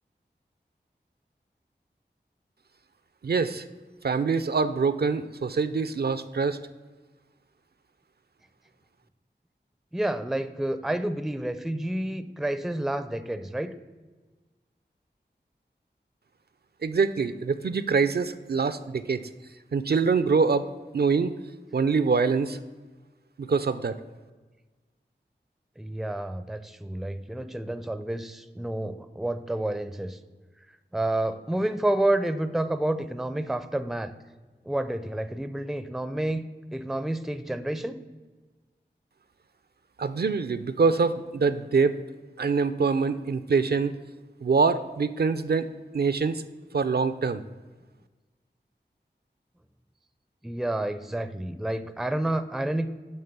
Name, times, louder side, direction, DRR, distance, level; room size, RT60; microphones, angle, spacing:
voice 1, 3.2-3.6 4.0-6.6 16.8-19.2 19.7-20.7 20.9-21.3 21.7-22.6 23.4-24.0 40.0-42.0 42.4-43.9 44.4-45.7 45.9-46.4 46.7-47.4, right 5 dB, 60° right, 12 dB, 0.4 m, -24 dB
voice 2, 9.9-13.7 25.8-30.2 30.9-34.1 34.7-36.4 36.7-38.0 50.4-52.9, right 1 dB, ahead, 12 dB, 0.4 m, -29 dB
8.6 x 3.6 x 5.9 m, 1.3 s
wide cardioid pair, 40°, 19 cm